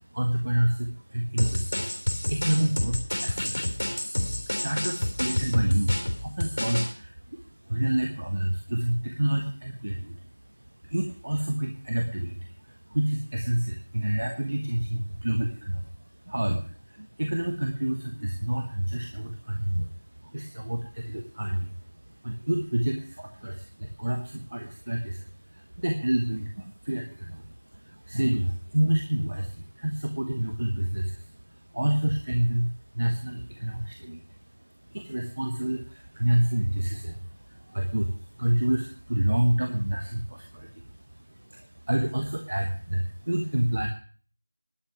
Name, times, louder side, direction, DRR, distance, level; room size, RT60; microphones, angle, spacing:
voice 1, 0.0-43.9, right 1 dB, 35° right, 4 dB, 1.2 m, -29 dB
sound 1, 1.4-6.9, left 1 dB, 75° left, 3.7 m, -29 dB
11.5 x 6.3 x 9.2 m, 0.40 s
figure-of-eight pair, 180°, 0 cm